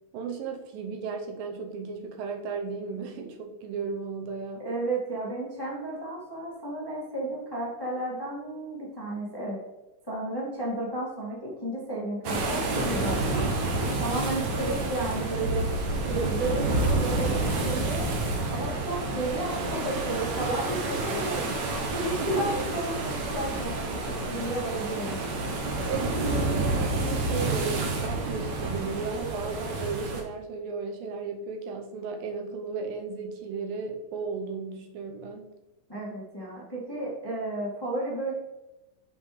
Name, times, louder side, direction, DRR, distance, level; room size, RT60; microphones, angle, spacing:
voice 1, 0.1-4.7 14.4-14.7 22.2-22.6 25.9-35.5, right 4 dB, 80° right, 3 dB, 2.5 m, -35 dB
voice 2, 4.6-9.6 10.1-13.5 13.9-15.7 16.0-18.1 18.5-25.2 35.9-38.3, right 2 dB, 10° left, -5 dB, 1.3 m, -33 dB
sound 1, 12.2-30.2, right 2 dB, 65° right, 2.1 m, -29 dB
7.2 x 6.4 x 3.2 m, 1.0 s
omnidirectional pair, 4.1 m